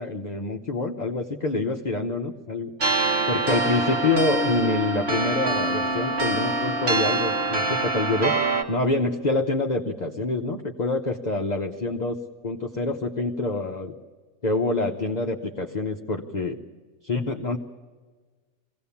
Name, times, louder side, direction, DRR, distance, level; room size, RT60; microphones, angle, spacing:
voice 1, 0.0-2.7 3.3-8.4 8.7-13.9 14.4-16.6 17.0-17.6, left 3 dB, 35° left, 2 dB, 0.9 m, -26 dB
sound 1, 2.8-8.6, right 2 dB, 45° right, 1.9 m, -25 dB
23.5 x 17.0 x 7.2 m, 1.4 s
omnidirectional pair, 1.5 m